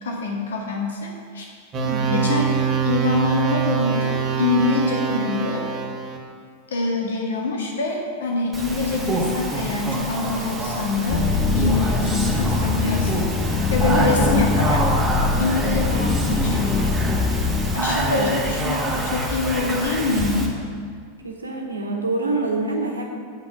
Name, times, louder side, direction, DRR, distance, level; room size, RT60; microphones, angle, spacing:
voice 1, 0.0-1.5 2.1-2.6 2.8-5.7 6.7-11.3 11.5-13.3 13.7-14.8 15.4-17.0 17.7-20.5, left 3 dB, 65° left, 0 dB, 1.7 m, -25 dB
sound 1, 1.7-6.2, right 7 dB, 30° right, 1.3 m, -24 dB
voice 2, 1.8-2.4 13.9-14.5 17.9-18.6 21.2-23.1, right 2 dB, 80° right, 1 dB, 1.3 m, -27 dB
Speech, 8.5-20.5, right 1 dB, 15° right, 1.5 m, -26 dB
sound 2, 11.1-17.8, left 4 dB, 20° left, 0.6 m, -23 dB
8.9 x 5.9 x 6.0 m, 2.1 s
figure-of-eight pair, 90°, 0 cm